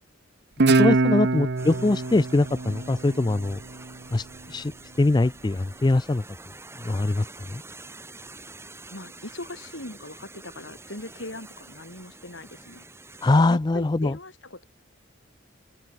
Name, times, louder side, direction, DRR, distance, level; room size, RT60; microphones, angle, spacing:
Guitar, 0.6-3.8, right 3 dB, 55° right, 0.8 m, -23 dB
voice 1, 0.7-3.6 4.1-4.7 5.0-6.2 6.8-7.6 13.2-14.2, left 2 dB, 20° left, 0.4 m, -23 dB
voice 2, 1.6-1.9 8.9-12.8 13.5-14.6, left 1 dB, 65° left, 4.9 m, -40 dB
sound 1, 1.6-13.6, right 2 dB, 15° right, 5.7 m, -46 dB
open air
head